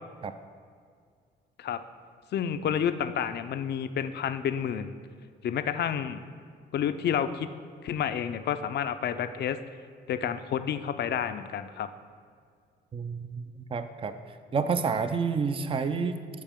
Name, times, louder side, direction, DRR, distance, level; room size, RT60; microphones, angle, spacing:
voice 1, 2.3-4.9 5.4-6.2 6.7-7.5 7.8-9.6 10.1-11.9, left 8 dB, 55° left, 11 dB, 0.5 m, -30 dB
voice 2, 12.9-14.2 14.5-16.2, right 5 dB, 25° right, 9 dB, 0.5 m, -29 dB
14.0 x 4.9 x 3.6 m, 2.1 s
cardioid pair, 90°, 20 cm